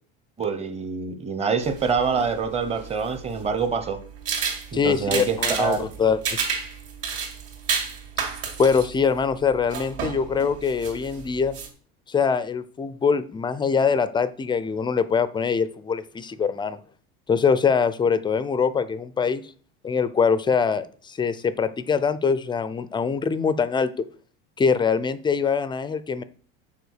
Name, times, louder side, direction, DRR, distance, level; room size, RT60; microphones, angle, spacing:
voice 1, 0.4-4.0 4.7-5.9, right 5 dB, 20° right, 0.9 m, -25 dB
sound 1, 1.6-11.7, right 6 dB, 50° right, 2.4 m, -32 dB
voice 2, 4.7-6.4 8.6-11.6 12.1-16.8 17.3-19.4 19.8-24.1 24.6-26.2, left 6 dB, 15° left, 0.4 m, -23 dB
6.9 x 4.4 x 6.5 m
cardioid pair, 135°, 30 cm